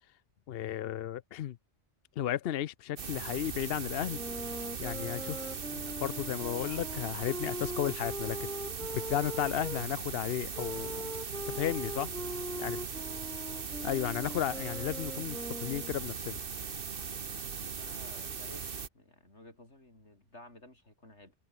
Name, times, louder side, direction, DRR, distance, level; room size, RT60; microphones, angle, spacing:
voice 1, 0.5-1.6 2.2-4.2 4.8-8.5 8.9-11.1 11.5-12.1 12.6-12.8 13.8-16.4, left 11 dB, 65° left, 0.8 m, -34 dB
sound 1, 3.0-18.9, right 6 dB, 55° right, 1.4 m, -39 dB
sound 2, 4.0-9.8 10.5-16.0, equal, 5° left, 1.5 m, -41 dB
voice 2, 17.2-18.7 18.9-21.4, left 1 dB, 80° left, 6.9 m, -55 dB
omnidirectional pair, 1.2 m